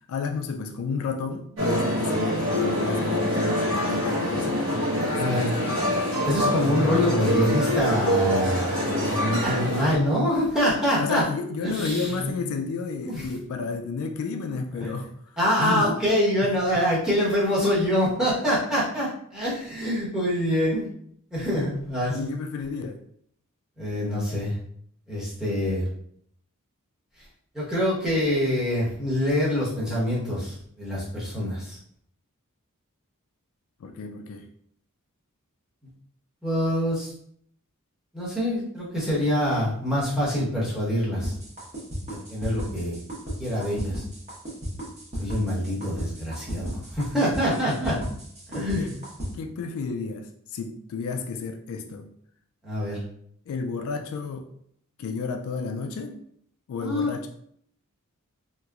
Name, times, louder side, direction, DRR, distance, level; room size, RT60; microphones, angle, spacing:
voice 1, 0.1-4.7 5.1-5.9 11.0-15.1 15.6-15.9 16.4-16.8 22.1-23.0 33.8-34.5 48.7-49.0 49.4-52.1 53.5-54.5 55.0-56.2 56.7-57.3, left 4 dB, 65° left, 6 dB, 0.3 m, -32 dB
sound 1, 1.6-10.0, equal, 60° right, 1.3 m, -25 dB
voice 2, 5.1-5.6 6.3-11.2 11.6-12.3 13.1-13.3 14.8-14.9 15.4-20.8 21.3-22.3 23.8-24.6 25.1-25.8 27.5-31.8 36.4-37.1 38.1-41.3 42.1-43.0 43.4-44.0 45.2-48.0 48.5-48.9 52.6-53.0 56.8-57.1, equal, 5° right, -8 dB, 1.0 m, -25 dB
sound 2, 41.2-49.3, equal, 30° right, 1.1 m, -33 dB
2.9 x 2.8 x 2.3 m, 0.66 s
head